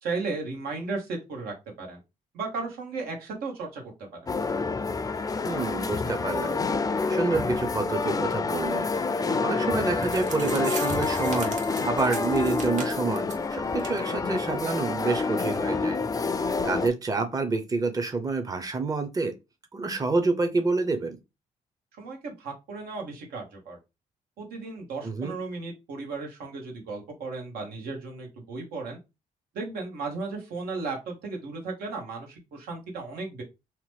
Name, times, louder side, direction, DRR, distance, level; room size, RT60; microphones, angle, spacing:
voice 1, 0.0-2.0 2.3-4.1 22.0-23.8 24.4-29.0 29.5-33.4, right 3 dB, 85° right, 1 dB, 1.1 m, -35 dB
sound 1, 4.3-16.9, left 4 dB, 25° left, 0.4 m, -28 dB
voice 2, 5.4-6.6 7.1-11.6 11.8-16.0 16.3-19.3 19.7-21.2 25.0-25.4, right 3 dB, 25° right, 7 dB, 0.7 m, -28 dB
sound 2, 9.7-9.8 10.0-13.4 13.8-14.0 14.3-14.4 14.9-15.0, right 4 dB, 55° right, 1.1 m, -39 dB
2.9 x 2.1 x 3.3 m, 0.24 s
supercardioid pair, 60°, 15 cm